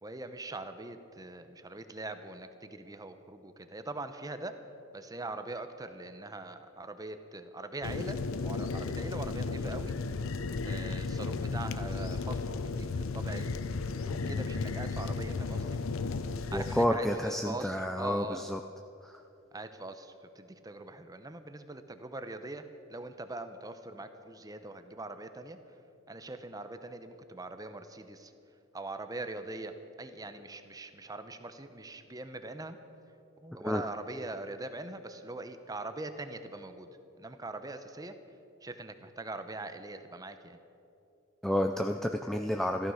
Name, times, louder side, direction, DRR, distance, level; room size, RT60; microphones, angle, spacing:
voice 1, 0.0-4.5 4.9-9.9 10.6-15.8 16.5-18.4 19.5-25.6 26.1-28.3 28.7-32.8 33.4-36.9 37.2-38.2 38.6-40.6, right 2 dB, 20° right, 9 dB, 0.8 m, -42 dB
sound 1, 7.8-16.9, left 4 dB, 75° left, 0.6 m, -34 dB
voice 2, 16.5-18.6 19.0-19.2 33.6-33.8 41.4-42.9, equal, ahead, 5 dB, 0.4 m, -30 dB
14.5 x 12.5 x 6.4 m, 2.8 s
head